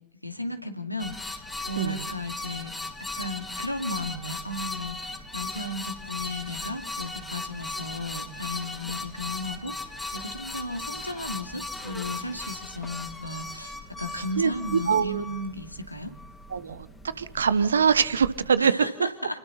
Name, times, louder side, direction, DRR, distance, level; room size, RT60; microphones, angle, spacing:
voice 1, 0.2-2.7 3.2-16.1 18.6-19.4, left 1 dB, 90° left, 5 dB, 2.6 m, -35 dB
sound 1, 1.0-18.6, left 2 dB, 5° left, 3.4 m, -38 dB
voice 2, 1.8-2.1 14.4-14.5 14.9-15.2 16.5-16.9 17.2-18.7, right 6 dB, 70° right, 15 dB, 1.3 m, -23 dB
29.5 x 21.0 x 4.3 m, 0.76 s
figure-of-eight pair, 90°, 0 cm